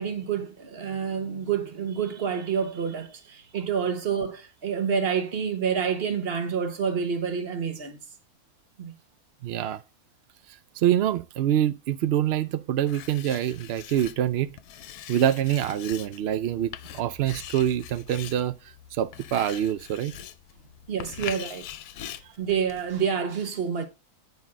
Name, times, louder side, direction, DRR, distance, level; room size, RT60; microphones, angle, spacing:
voice 1, 0.0-8.0 8.8-8.9 20.9-21.7 22.0-23.9, right 7 dB, 45° right, 1.1 m, -28 dB
voice 2, 9.4-9.8 10.5-14.5 15.1-20.2 22.2-22.3, right 11 dB, 85° right, 0.5 m, -26 dB
Writing, 12.9-23.0, left 11 dB, 80° left, 1.2 m, -42 dB
9.2 x 5.4 x 3.7 m
omnidirectional pair, 1.6 m